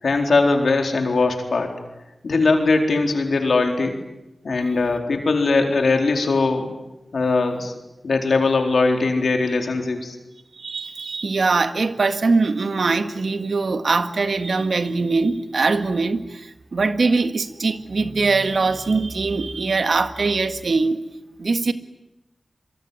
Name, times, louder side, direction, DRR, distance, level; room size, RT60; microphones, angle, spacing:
voice 1, 0.0-1.7 2.2-4.0 4.4-6.7 7.1-7.7 8.0-10.2, left 3 dB, 85° left, 4 dB, 4.1 m, -20 dB
voice 2, 10.5-21.0 21.4-21.7, right 3 dB, 75° right, 9 dB, 1.8 m, -22 dB
26.5 x 23.0 x 9.4 m, 0.95 s
wide cardioid pair, 60°, 0 cm